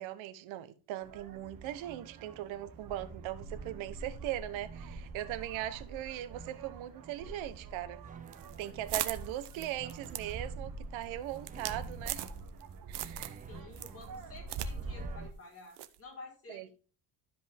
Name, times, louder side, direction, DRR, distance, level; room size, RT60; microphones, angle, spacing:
voice 1, 0.0-8.0 8.6-12.3 12.9-13.4 16.5-16.7, right 13 dB, 85° right, 1.1 m, -39 dB
sound 1, 1.0-15.3, right 3 dB, 45° right, 1.2 m, -46 dB
sound 2, 1.5-15.3, right 7 dB, 20° right, 0.4 m, -53 dB
sound 3, 8.3-12.6 12.9-13.4 13.7-14.7 15.0-15.1 15.8-16.0, right 14 dB, 65° right, 0.9 m, -39 dB
voice 2, 13.5-16.7, left 3 dB, 30° left, 4.4 m, -51 dB
12.5 x 5.3 x 3.5 m
cardioid pair, 140°, 45 cm